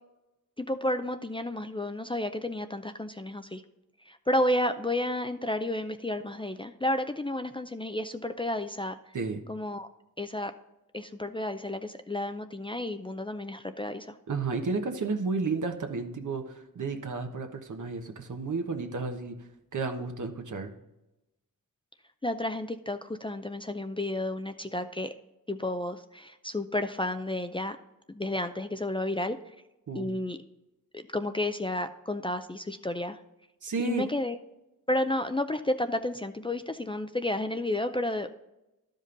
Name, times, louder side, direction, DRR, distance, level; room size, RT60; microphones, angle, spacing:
voice 1, 0.6-3.6 4.0-9.0 9.5-9.9 10.2-10.5 10.9-14.2 22.2-25.1 25.5-27.8 28.1-29.4 29.9-30.4 30.9-33.2 33.8-34.4 34.9-38.3, left 1 dB, 15° left, 8 dB, 0.5 m, -31 dB
voice 2, 14.3-20.7 29.9-30.1 33.6-34.0, right 4 dB, 60° right, 5 dB, 1.2 m, -32 dB
12.0 x 5.2 x 3.9 m, 0.94 s
cardioid pair, 70°, 34 cm